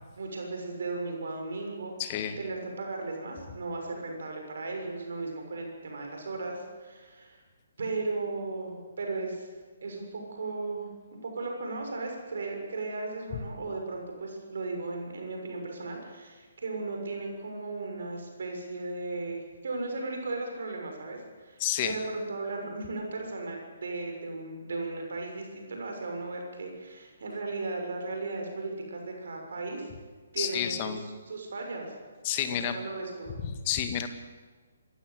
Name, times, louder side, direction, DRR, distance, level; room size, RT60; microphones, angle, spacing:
voice 1, 0.2-1.9 2.4-7.4 7.8-9.5 9.8-29.9 30.3-31.0 31.3-31.9 32.7-33.4, right 3 dB, 55° right, 2 dB, 6.6 m, -36 dB
voice 2, 2.0-2.4 21.6-22.0 30.4-31.0 32.2-32.8 33.4-34.1, left 10 dB, 30° left, 8 dB, 2.1 m, -30 dB
27.0 x 16.0 x 8.6 m, 1.4 s
figure-of-eight pair, 135°, 0 cm